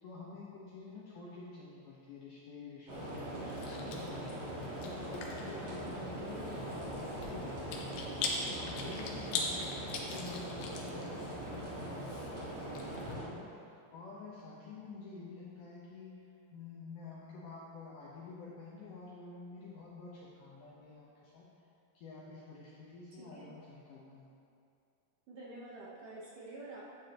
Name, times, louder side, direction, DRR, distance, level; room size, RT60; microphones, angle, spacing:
voice 1, 0.0-4.5 4.7-16.2 16.5-21.5 21.9-24.3, left 4 dB, 70° left, -7 dB, 2.0 m, -49 dB
Chewing mastication, 2.9-13.1, left 4 dB, 85° left, 3.3 m, -43 dB
sound 1, 2.9-13.2, right 1 dB, 40° right, 3.2 m, -41 dB
voice 2, 25.3-26.8, right 2 dB, 70° right, -6 dB, 2.1 m, -48 dB
12.5 x 8.7 x 3.0 m, 2.6 s
omnidirectional pair, 5.0 m